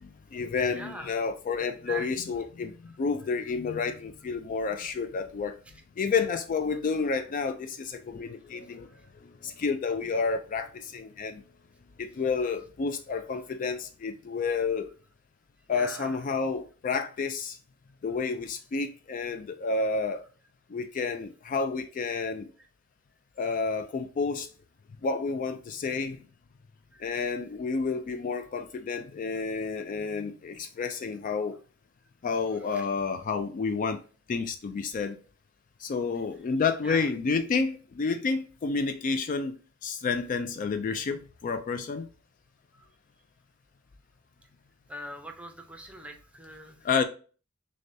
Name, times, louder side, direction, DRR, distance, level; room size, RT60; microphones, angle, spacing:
voice 1, 0.0-5.6 6.0-8.9 9.2-11.4 12.0-14.9 15.7-17.6 18.0-20.2 20.7-22.5 23.4-24.5 25.0-26.2 27.0-31.6 32.2-34.0 34.3-35.2 35.8-39.5 39.8-42.1 46.8-47.0, left 4 dB, 40° left, 0.3 m, -30 dB
voice 2, 0.7-1.1 1.9-2.1 15.7-16.2 26.9-27.0 32.7-32.9 36.8-37.1 42.8-42.9 44.9-46.8, right 2 dB, 5° right, 0.6 m, -41 dB
6.4 x 2.2 x 2.7 m
head